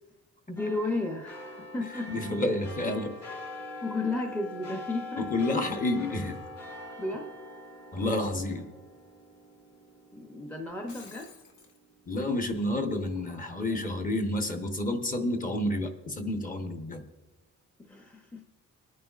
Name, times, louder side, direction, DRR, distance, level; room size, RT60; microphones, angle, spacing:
voice 1, 0.5-2.1 3.8-5.3 7.0-7.3 10.1-11.3 17.8-18.4, left 2 dB, 5° left, 2 dB, 0.6 m, -33 dB
sound 1, 0.6-11.3 11.7-11.8, left 2 dB, 55° left, 2.4 m, -43 dB
voice 2, 2.1-3.1 5.2-6.4 7.9-8.7 12.1-17.1, left 1 dB, 25° left, 5 dB, 0.9 m, -30 dB
Shatter, 10.7-11.8, left 5 dB, 75° left, 1.5 m, -51 dB
23.5 x 9.3 x 2.4 m, 1.2 s
cardioid pair, 170°, 31 cm